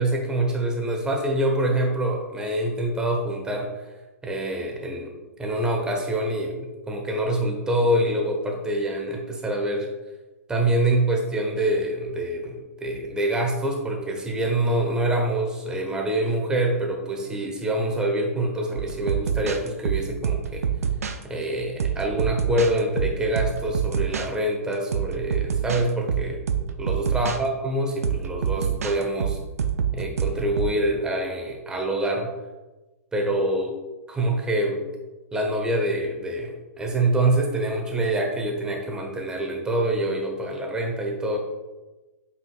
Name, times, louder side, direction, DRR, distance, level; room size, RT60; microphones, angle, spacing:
voice 1, 0.0-3.7 4.2-5.1 5.4-9.9 10.5-20.7 21.2-26.4 26.8-29.4 29.9-32.3 33.1-33.8 34.1-34.8 35.3-41.4, right 1 dB, 10° right, 2 dB, 1.1 m, -25 dB
sound 1, 18.8-21.2 21.8-24.3 24.7-27.4 28.0-30.8, right 7 dB, 70° right, 0.5 m, -26 dB
7.6 x 5.6 x 2.4 m, 1.1 s
figure-of-eight pair, 115°, 8 cm